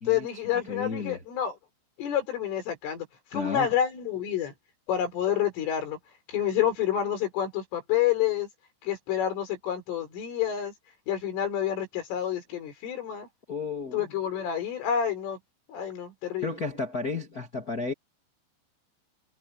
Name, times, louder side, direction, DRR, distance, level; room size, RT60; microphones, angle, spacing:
voice 1, 0.1-1.6 2.0-3.1 3.3-4.5 4.9-6.0 6.3-8.5 8.8-10.7 11.1-13.3 13.9-15.4 15.7-16.5, left 10 dB, 80° left, 7.1 m, -28 dB
voice 2, 0.7-1.2 3.3-3.7 13.5-14.1 16.4-17.9, left 4 dB, 30° left, 1.7 m, -33 dB
omnidirectional pair, 5.6 m